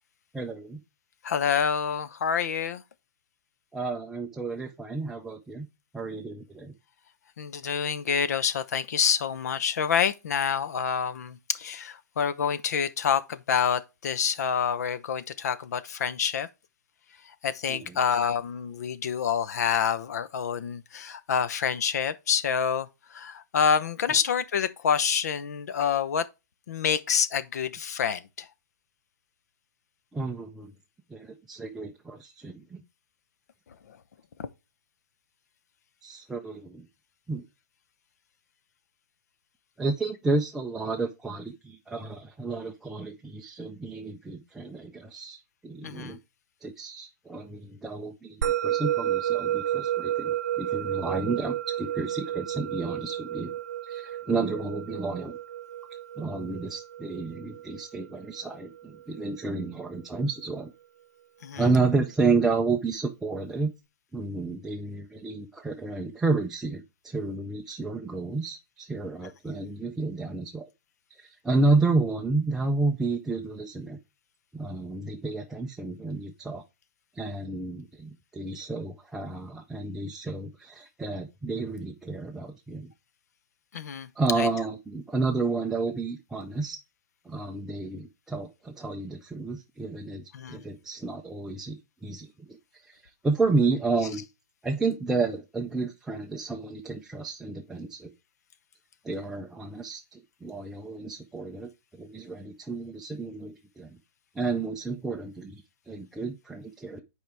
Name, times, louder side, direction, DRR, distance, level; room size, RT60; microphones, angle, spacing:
voice 1, 0.3-0.8 3.7-5.7 5.9-6.7 17.7-18.0 30.1-30.7 31.1-32.8 36.0-36.9 37.3-37.4 39.8-46.2 46.6-53.5 53.8-55.4 56.2-60.7 61.6-63.7 64.1-70.7 71.2-74.0 74.5-76.6 77.2-82.9 84.2-86.8 87.3-92.6 92.9-94.2 94.6-98.1 99.0-101.7 102.0-104.0 104.4-107.0, right 3 dB, 5° right, 0.5 m, -31 dB
voice 2, 1.2-2.8 7.4-16.5 17.4-26.2 26.7-28.5 33.9-34.0 34.4-34.5 45.8-46.2 61.4-61.7 83.7-84.1 84.4-84.5 90.3-90.6, left 7 dB, 60° left, 0.9 m, -27 dB
Musical instrument, 48.4-59.0, right 11 dB, 65° right, 0.4 m, -31 dB
9.2 x 4.8 x 3.5 m
hypercardioid pair, 165°, 10 cm